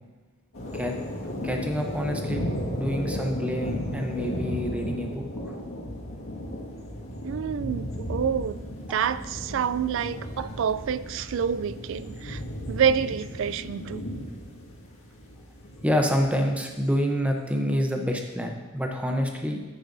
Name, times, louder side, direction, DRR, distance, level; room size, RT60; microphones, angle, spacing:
sound 1, 0.5-16.6, equal, 65° left, 1.9 m, -35 dB
voice 1, 1.4-5.3 8.9-9.0 15.8-19.6, equal, 5° right, 2 dB, 0.7 m, -27 dB
voice 2, 7.2-8.6 8.9-12.4 12.7-14.0, right 7 dB, 60° right, 15 dB, 0.3 m, -27 dB
10.0 x 9.5 x 2.7 m, 1.3 s
head